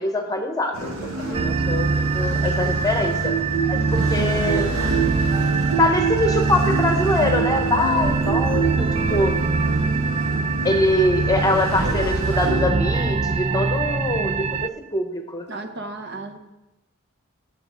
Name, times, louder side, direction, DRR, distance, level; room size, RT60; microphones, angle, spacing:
voice 1, 0.0-3.3 3.7-4.7 5.8-9.3 10.6-15.4, left 1 dB, 20° left, 4 dB, 0.9 m, -23 dB
sound 1, 0.7-12.7, right 4 dB, 90° right, 2.8 m, -27 dB
voice 2, 1.2-1.5 15.5-16.4, right 2 dB, 55° right, 5 dB, 1.0 m, -35 dB
sound 2, 1.3-14.7, right 4 dB, 30° right, 0.3 m, -23 dB
10.5 x 6.8 x 5.2 m, 0.97 s
head